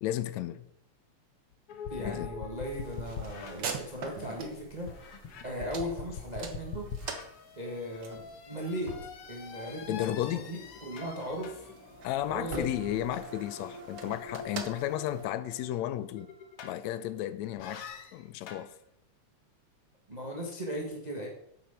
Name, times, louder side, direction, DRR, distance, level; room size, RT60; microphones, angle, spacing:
voice 1, 0.0-0.7 2.0-2.3 9.9-10.5 12.0-16.3 16.6-17.8 18.1-18.7, left 13 dB, 80° left, 1.8 m, -33 dB
sound 1, 1.7-4.4 4.9-17.1 17.6-18.7, left 5 dB, 60° left, 1.8 m, -44 dB
voice 2, 1.9-4.9 5.4-6.9 7.6-8.9 9.3-11.7 12.3-13.0 20.1-21.3, equal, 30° right, 0.8 m, -37 dB
sound 2, 2.6-15.3, right 5 dB, 55° right, 1.2 m, -45 dB
8.4 x 7.7 x 5.7 m
omnidirectional pair, 3.3 m